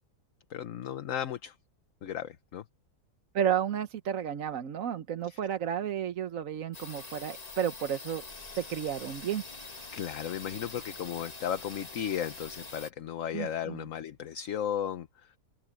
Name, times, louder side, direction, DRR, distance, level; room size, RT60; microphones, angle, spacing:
voice 1, 0.5-1.5 2.0-2.6 5.3-5.4 9.9-15.1, left 9 dB, 60° left, 1.2 m, -35 dB
voice 2, 3.3-8.2 8.6-9.6 13.3-13.9, right 9 dB, 60° right, 1.2 m, -32 dB
sound 1, 6.7-12.9, left 3 dB, 25° left, 1.5 m, -45 dB
omnidirectional pair, 1.7 m